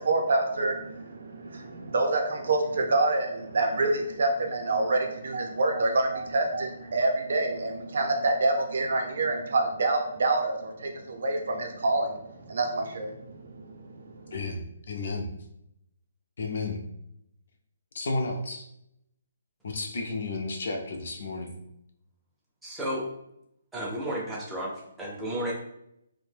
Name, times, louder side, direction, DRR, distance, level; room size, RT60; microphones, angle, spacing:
voice 1, 0.0-14.3, right 2 dB, 55° right, 2 dB, 0.5 m, -27 dB
voice 2, 14.3-15.3 16.4-16.8 17.9-18.6 19.6-21.6, left 3 dB, 50° left, 2 dB, 0.5 m, -32 dB
voice 3, 22.6-23.0 23.7-24.7 25.0-25.5, equal, 5° right, -5 dB, 0.4 m, -32 dB
2.5 x 2.1 x 3.2 m, 0.79 s
hypercardioid pair, 175°, 0 cm